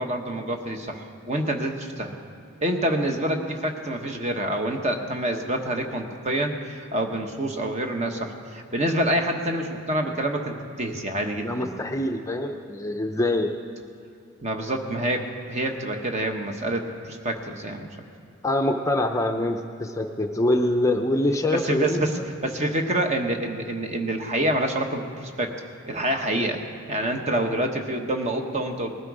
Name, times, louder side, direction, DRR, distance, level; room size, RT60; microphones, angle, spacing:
voice 1, 0.0-2.2 2.6-11.8 14.4-17.9 21.5-25.6 25.9-26.6 26.9-28.9, right 1 dB, 35° right, 4 dB, 1.2 m, -27 dB
voice 2, 11.4-13.5 18.4-22.2, left 1 dB, 15° left, 4 dB, 0.6 m, -25 dB
19.5 x 12.0 x 4.9 m, 2.7 s
head